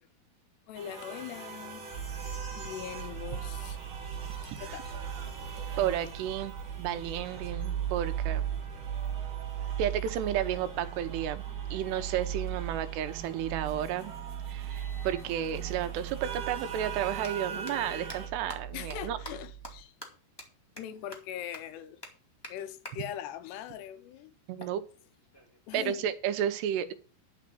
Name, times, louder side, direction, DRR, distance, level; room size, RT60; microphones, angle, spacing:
voice 1, 0.7-3.8 4.4-5.7 18.7-19.9 20.8-22.0 22.5-24.3 25.7-26.1, left 10 dB, 85° left, 3.0 m, -42 dB
sound 1, 0.7-18.3, right 6 dB, 35° right, 2.8 m, -44 dB
sound 2, 1.9-19.8, right 9 dB, 75° right, 3.2 m, -38 dB
voice 2, 5.8-8.5 9.8-11.4 11.7-14.1 14.5-19.2 24.5-24.8 25.7-26.9, right 10 dB, 90° right, 3.1 m, -32 dB
sound 3, 17.2-17.3 17.7-17.8 18.1-18.2 18.5-18.6 18.9-19.0 19.2-19.3 19.6-19.7 20.0-20.1 20.4-20.5 20.8-20.9 21.1-21.2 21.5-21.6 22.0-22.1 22.4-22.5 22.8-22.9 24.6-25.6, left 1 dB, 15° left, 0.8 m, -44 dB
11.5 x 5.3 x 7.7 m
omnidirectional pair, 4.7 m